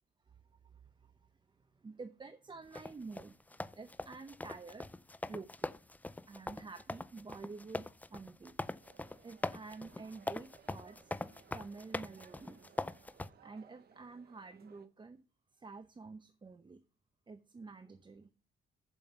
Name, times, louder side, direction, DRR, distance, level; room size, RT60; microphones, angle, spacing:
voice 1, 0.3-4.9 5.3-5.7 6.3-8.6 9.2-11.2 11.5-12.7 13.4-15.2 15.5-16.8 17.3-18.3, right 4 dB, 25° right, 9 dB, 0.7 m, -50 dB
sound 1, 2.7-13.3, left 2 dB, 10° left, 0.4 m, -42 dB
sound 2, 8.8-14.9, right 8 dB, 50° right, 0.9 m, -63 dB
7.4 x 5.3 x 6.6 m, 0.36 s
cardioid pair, 90°, 20 cm